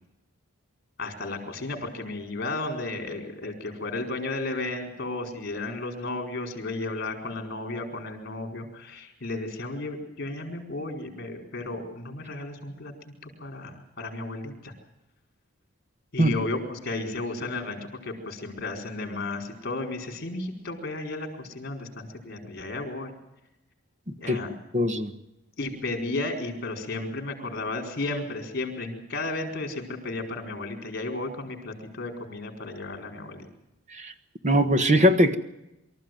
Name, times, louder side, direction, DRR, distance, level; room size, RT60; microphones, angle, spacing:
voice 1, 1.0-14.7 16.1-23.1 24.2-24.5 25.6-33.5, left 2 dB, 45° left, 4 dB, 4.6 m, -33 dB
voice 2, 24.1-24.4 24.7-25.1 33.9-34.1 34.4-35.3, equal, 35° right, 9 dB, 1.4 m, -21 dB
24.0 x 14.0 x 9.3 m, 0.90 s
head